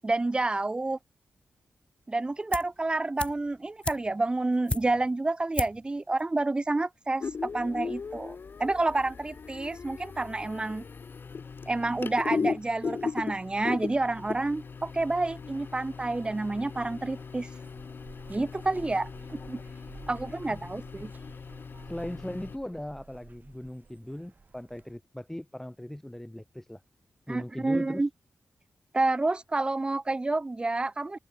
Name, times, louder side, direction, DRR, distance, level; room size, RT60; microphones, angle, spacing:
voice 1, 0.0-1.0 2.1-10.8 11.7-17.5 18.3-19.6 20.1-21.1 27.3-28.1 28.9-31.2, right 2 dB, 20° right, 0.6 m, -29 dB
sound 1, 2.5-2.8 3.2-5.2 5.5-5.9 6.2-6.3, left 2 dB, 25° left, 2.1 m, -35 dB
sound 2, 7.2-22.6, left 5 dB, 50° left, 1.0 m, -38 dB
Zipper (clothing), 13.3-25.0, right 4 dB, 40° right, 5.2 m, -54 dB
voice 2, 21.9-26.8 27.3-28.0, left 1 dB, 10° left, 5.8 m, -39 dB
cardioid pair, 80°, 5 cm